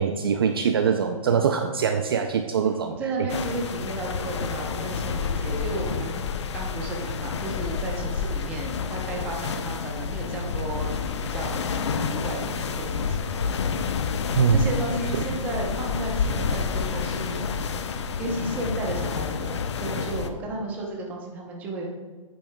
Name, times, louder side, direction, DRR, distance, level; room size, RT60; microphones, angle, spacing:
voice 1, 0.0-3.0 14.3-14.7, right 6 dB, 40° right, 6 dB, 0.4 m, -23 dB
voice 2, 2.6-6.3 6.5-10.9 11.2-13.6 14.5-17.8 18.2-21.9, right 2 dB, 10° right, -1 dB, 0.7 m, -33 dB
sound 1, 3.3-20.3, left 5 dB, 55° left, 0.6 m, -29 dB
9.1 x 8.5 x 2.2 m, 1.4 s
hypercardioid pair, 165°, 18 cm